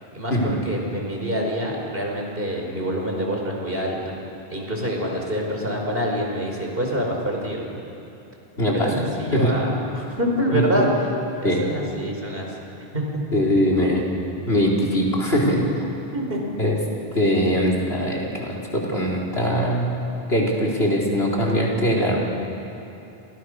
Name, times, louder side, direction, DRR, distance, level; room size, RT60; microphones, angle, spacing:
voice 1, 0.1-4.1 4.5-7.6 8.7-11.1 11.4-12.6 12.9-13.2 16.1-16.4, equal, 65° right, 0 dB, 5.1 m, -26 dB
voice 2, 8.6-8.9 9.3-9.5 10.5-10.9 11.4-11.6 13.3-14.1 14.5-15.9 16.6-16.8 17.1-19.9 20.3-22.2, equal, 80° left, -2 dB, 4.9 m, -21 dB
29.5 x 28.5 x 6.6 m, 2.9 s
omnidirectional pair, 1.0 m